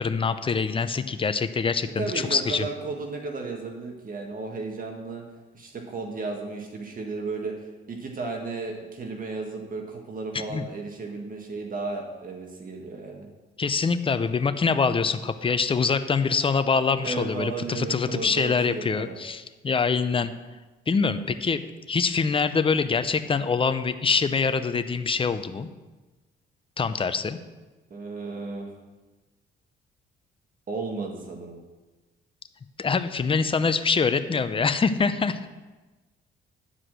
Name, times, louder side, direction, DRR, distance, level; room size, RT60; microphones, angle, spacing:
voice 1, 0.0-2.7 10.3-10.6 13.6-20.3 20.9-21.6 21.9-25.7 26.8-27.4 32.8-35.5, left 5 dB, 25° left, 11 dB, 0.6 m, -24 dB
voice 2, 2.0-5.2 5.5-7.5 7.9-13.3 17.0-19.2 27.9-28.7 30.7-31.6, right 3 dB, 45° right, 2 dB, 1.5 m, -34 dB
10.0 x 4.9 x 7.6 m, 1.2 s
cardioid pair, 90°, 20 cm